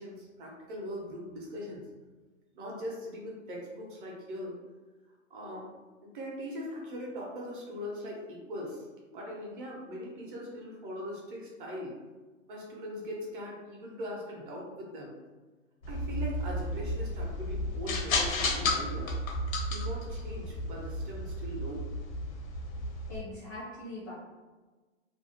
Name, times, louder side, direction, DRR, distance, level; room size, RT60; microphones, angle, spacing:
voice 1, 0.0-1.9 2.5-4.5 5.3-5.7 6.0-8.8 9.1-12.0 12.5-15.2 15.9-19.1 19.7-21.8, equal, 40° right, -3 dB, 0.8 m, -40 dB
sound 1, 15.8-23.2, left 1 dB, 85° left, 0.7 m, -33 dB
voice 2, 23.1-24.1, left 2 dB, 15° left, -9 dB, 0.4 m, -41 dB
2.6 x 2.0 x 2.8 m, 1.3 s
hypercardioid pair, 145°, 40 cm